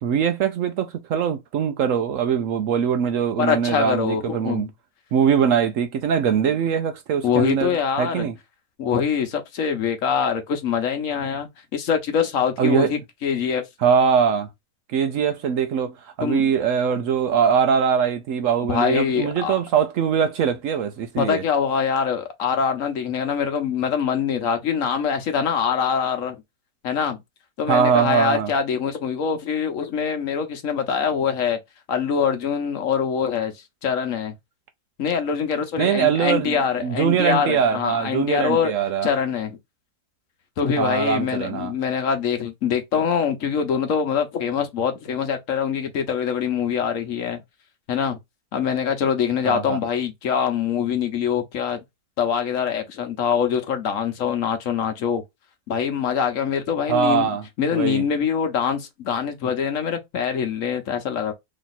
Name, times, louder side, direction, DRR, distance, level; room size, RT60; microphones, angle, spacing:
voice 1, 0.0-4.7 5.1-8.4 12.6-12.9 13.8-14.5 14.9-21.4 27.7-28.5 35.8-39.1 40.8-41.7 49.4-49.8 56.9-57.4 57.7-58.0, right 7 dB, 70° right, 0.8 m, -22 dB
voice 2, 3.4-4.7 7.2-8.3 8.8-13.6 16.2-16.5 18.7-19.5 21.2-26.4 26.8-27.2 27.6-31.6 31.9-33.5 33.8-34.3 35.0-38.7 39.0-39.6 40.6-47.4 47.9-48.2 48.5-51.8 52.2-55.2 55.7-57.3 57.6-61.3, left 7 dB, 60° left, 1.1 m, -24 dB
3.1 x 2.9 x 4.0 m
omnidirectional pair, 1.6 m